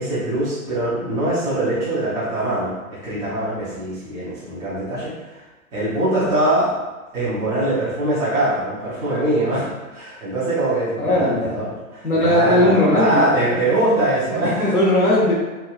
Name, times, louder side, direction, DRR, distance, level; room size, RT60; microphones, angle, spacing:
voice 1, 0.0-5.4 5.7-6.7 7.1-14.7, right 1 dB, 10° right, -11 dB, 0.5 m, -22 dB
voice 2, 11.0-11.5 12.0-13.4 14.7-15.3, left 1 dB, 85° left, -5 dB, 1.0 m, -18 dB
3.1 x 2.4 x 2.3 m, 1.2 s
figure-of-eight pair, 115°, 43 cm